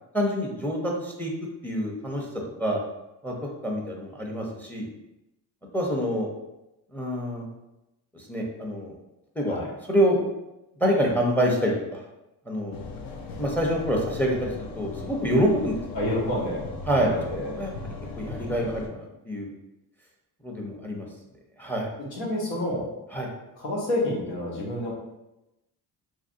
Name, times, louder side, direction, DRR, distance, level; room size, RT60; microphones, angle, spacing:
voice 1, 0.1-1.3 1.6-2.2 2.6-2.8 3.2-4.9 5.7-6.3 6.9-7.4 8.1-8.9 9.4-9.6 9.9-10.2 10.8-12.0 12.5-12.8 13.4-15.8 16.9-17.1 17.4-17.7 18.2-19.5 20.4-21.1 21.6-21.9 23.1-23.3, equal, 5° left, 0 dB, 0.6 m, -26 dB
sound 1, 12.7-18.9, left 3 dB, 55° left, 0.6 m, -38 dB
voice 2, 15.9-16.6 17.0-17.5 22.1-22.9 23.6-24.9, left 1 dB, 85° left, -3 dB, 1.0 m, -28 dB
3.1 x 2.5 x 2.5 m, 0.93 s
cardioid pair, 75°, 43 cm